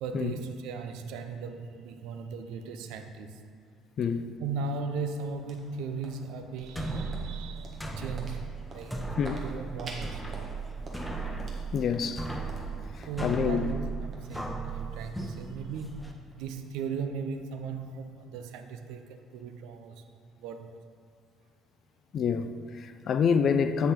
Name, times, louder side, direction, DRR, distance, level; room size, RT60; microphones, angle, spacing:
voice 1, 0.0-3.4 4.4-10.4 13.1-20.0 20.4-20.8, right 4 dB, 65° right, 0.5 m, -37 dB
sound 1, 4.5-16.9, right 2 dB, 45° right, 1.4 m, -50 dB
sound 2, 6.6-16.1, right 3 dB, 5° left, 1.0 m, -37 dB
voice 2, 11.7-12.3 12.9-13.7 22.1-23.9, left 6 dB, 50° left, 0.4 m, -27 dB
7.9 x 6.7 x 3.7 m
figure-of-eight pair, 50°, 0 cm